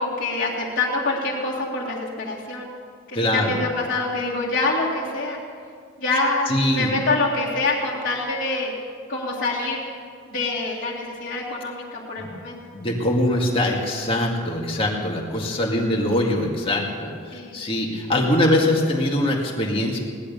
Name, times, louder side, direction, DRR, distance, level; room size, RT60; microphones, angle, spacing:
voice 1, 0.0-2.7 3.3-5.4 6.0-8.7 9.1-9.8 10.3-12.6 15.4-15.5 17.3-17.6, left 3 dB, 40° left, -7 dB, 2.3 m, -25 dB
voice 2, 3.1-3.6 6.5-6.9 12.2-12.3 12.7-20.0, left 1 dB, 25° left, -1 dB, 2.1 m, -22 dB
18.0 x 11.5 x 6.9 m, 2.1 s
head